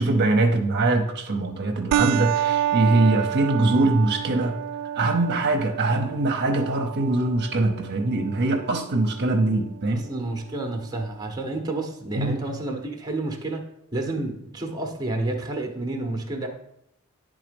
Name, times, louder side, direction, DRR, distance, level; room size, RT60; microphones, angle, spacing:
voice 1, 0.0-4.6 4.9-10.1 12.1-12.4, right 2 dB, 50° right, 4 dB, 0.8 m, -22 dB
sound 1, 1.9-10.9, right 11 dB, 90° right, 0.3 m, -30 dB
voice 2, 9.9-13.6 13.9-16.5, right 2 dB, 20° right, 3 dB, 0.9 m, -30 dB
10.0 x 3.6 x 5.2 m, 0.79 s
head